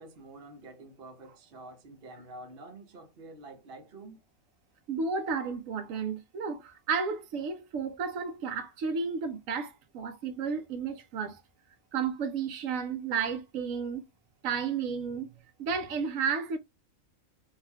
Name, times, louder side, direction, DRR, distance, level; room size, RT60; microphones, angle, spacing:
voice 1, 0.0-4.2, right 2 dB, 50° right, 0.9 m, -48 dB
voice 2, 4.9-11.4 11.9-14.0 14.4-15.3 15.6-16.6, right 5 dB, 90° right, 1.0 m, -32 dB
3.4 x 2.3 x 2.2 m
omnidirectional pair, 1.3 m